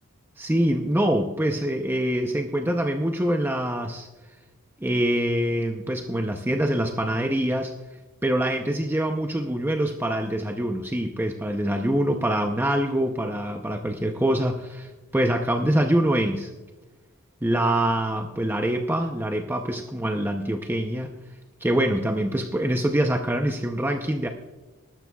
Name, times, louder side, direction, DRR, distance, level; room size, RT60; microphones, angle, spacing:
voice 1, 0.4-4.1 4.8-7.7 8.2-16.5 17.4-21.1 21.6-24.3, right 1 dB, 10° right, 4 dB, 0.6 m, -25 dB
20.5 x 12.0 x 2.3 m, 1.2 s
head